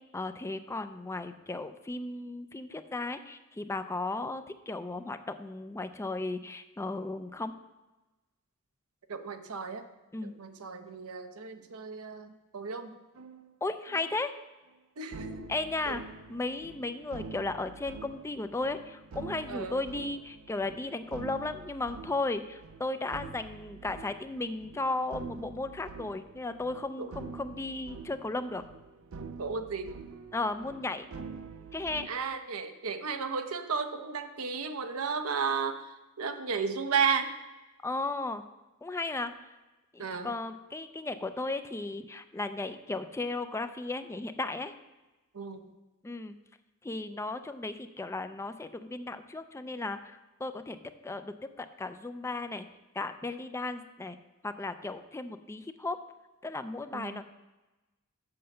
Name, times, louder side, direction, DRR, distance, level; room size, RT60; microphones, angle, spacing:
voice 1, 0.1-7.5 10.1-10.3 13.6-14.3 15.5-16.0 16.3-28.6 30.3-31.1 31.7-32.1 37.8-38.4 38.8-39.3 39.9-44.7 46.0-46.3 46.8-50.8 51.0-52.6 52.9-54.2 54.4-56.0 56.4-57.2, left 2 dB, 15° left, 10 dB, 0.4 m, -35 dB
voice 2, 9.1-9.8 10.2-12.9 15.0-15.5 15.9-16.0 19.5-19.8 27.0-27.1 29.4-29.9 32.1-35.9 36.2-37.3 40.0-40.3 45.3-45.6 56.9-57.2, right 5 dB, 90° right, 7 dB, 0.8 m, -33 dB
sound 1, 13.2-13.5 13.9-14.2 15.1-32.1, right 4 dB, 70° right, 0.5 m, -46 dB
7.7 x 5.4 x 6.6 m, 1.1 s
head